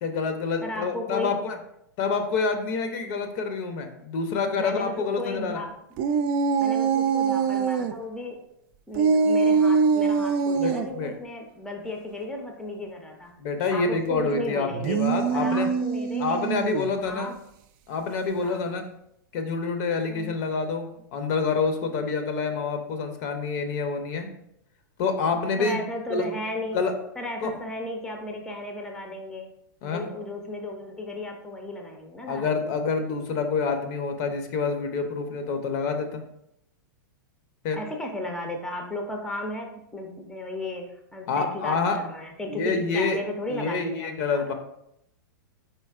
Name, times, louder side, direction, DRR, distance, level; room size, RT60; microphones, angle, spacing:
voice 1, 0.0-1.6 2.0-5.6 10.6-11.1 13.4-15.7 16.2-17.3 17.9-18.8 19.3-24.3 25.0-25.8 26.1-26.3 26.7-26.9 27.4-27.5 29.8-30.1 32.3-36.2 37.6-37.8 41.3-42.0 42.5-43.2 43.5-44.5, left 4 dB, 50° left, 7 dB, 0.6 m, -27 dB
voice 2, 0.6-1.4 4.6-5.7 6.6-8.4 8.9-13.3 13.7-15.0 15.3-16.5 17.1-17.3 18.4-18.7 20.1-20.3 25.6-26.8 27.2-29.5 29.8-32.6 37.7-44.4, left 2 dB, 5° left, 2 dB, 0.5 m, -35 dB
sound 1, 6.0-7.9 8.9-10.9 14.7-16.9, right 5 dB, 45° right, 0.4 m, -23 dB
4.4 x 4.0 x 2.4 m, 0.77 s
hypercardioid pair, 120°, 11 cm